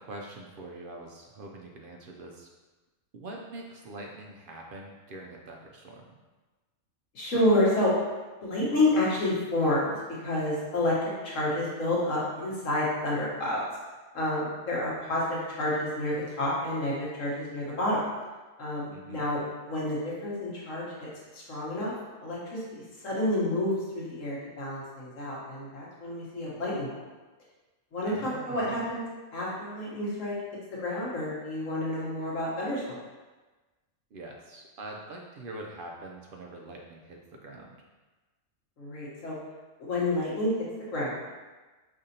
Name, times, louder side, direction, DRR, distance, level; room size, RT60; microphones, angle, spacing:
voice 1, 0.0-2.5 3.1-6.1 18.9-19.3 28.0-28.9 34.1-37.8, right 2 dB, 60° right, 0 dB, 0.6 m, -44 dB
voice 2, 7.1-7.9 8.4-9.9 10.2-13.6 14.1-18.1 18.6-20.8 21.3-21.9 22.2-26.9 27.9-29.0 29.3-30.3 30.8-33.0 38.8-39.3 39.8-40.5 40.9-41.5, left 1 dB, 90° left, -6 dB, 1.5 m, -29 dB
5.1 x 3.3 x 2.8 m, 1.2 s
omnidirectional pair, 1.3 m